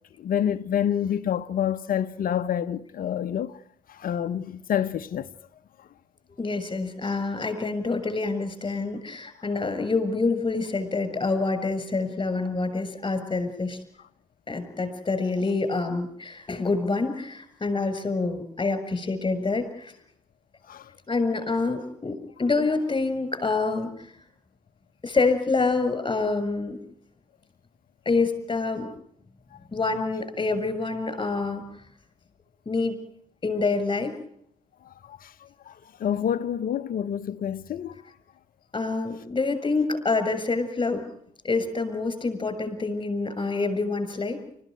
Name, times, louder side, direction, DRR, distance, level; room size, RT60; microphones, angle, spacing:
voice 1, 0.2-3.6 3.9-5.3 20.7-20.9 34.8-38.0, left 9 dB, 55° left, 1.0 m, -28 dB
voice 2, 6.4-13.8 14.5-19.9 21.1-24.1 25.0-26.8 28.1-28.9 29.7-31.6 32.7-33.0 33.4-34.1 38.7-41.0 41.4-44.4, left 3 dB, 25° left, 7.0 m, -26 dB
29.5 x 14.5 x 9.3 m
hypercardioid pair, 45°, 18 cm